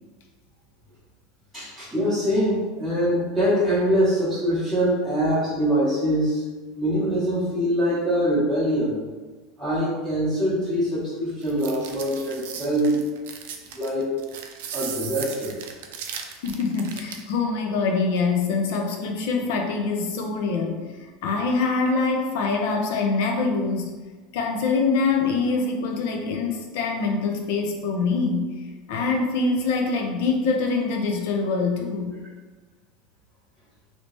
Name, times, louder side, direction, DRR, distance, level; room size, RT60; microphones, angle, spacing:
voice 1, 1.5-6.4 6.7-9.0 9.6-13.0 13.7-14.2 14.7-15.6, equal, ahead, -14 dB, 0.9 m, -23 dB
sound 1, 11.4-17.3, right 7 dB, 80° right, 0.4 m, -36 dB
voice 2, 16.4-20.8 21.2-23.9 24.3-28.5 28.9-32.1, left 4 dB, 65° left, 2 dB, 0.5 m, -24 dB
3.2 x 2.8 x 3.0 m, 1.3 s
supercardioid pair, 175°, 0 cm